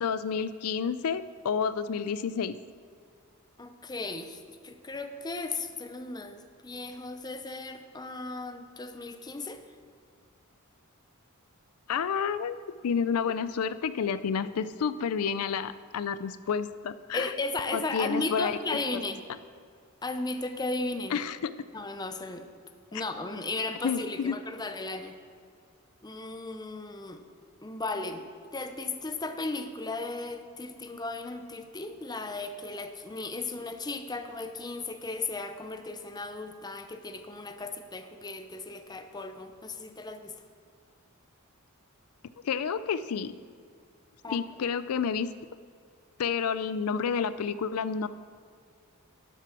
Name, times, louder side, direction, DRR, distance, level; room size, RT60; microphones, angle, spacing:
voice 1, 0.0-2.5 11.9-17.3 17.7-18.6 21.1-21.5 22.9-23.0 23.8-24.4 42.4-43.3 44.3-45.3 46.2-48.1, left 6 dB, 90° left, 14 dB, 0.4 m, -30 dB
voice 2, 3.6-9.6 17.1-19.2 20.0-21.2 21.7-22.5 22.9-25.2 26.0-27.2 27.6-40.3 44.2-44.4, left 3 dB, 20° left, 8 dB, 0.7 m, -36 dB
12.0 x 8.1 x 6.0 m, 2.2 s
head